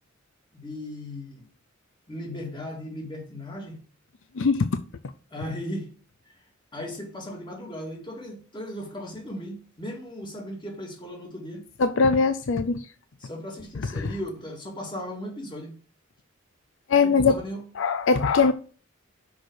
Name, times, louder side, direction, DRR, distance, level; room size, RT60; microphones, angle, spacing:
voice 1, 0.5-1.4 2.1-3.8 5.3-5.9 6.7-11.6 13.2-15.7 17.0-17.6, left 1 dB, 25° left, 2.1 m, -36 dB
voice 2, 4.3-4.7 11.8-12.9 14.0-14.1 16.9-17.4 17.8-18.5, left 4 dB, 65° left, 0.5 m, -21 dB
6.2 x 5.0 x 6.3 m
head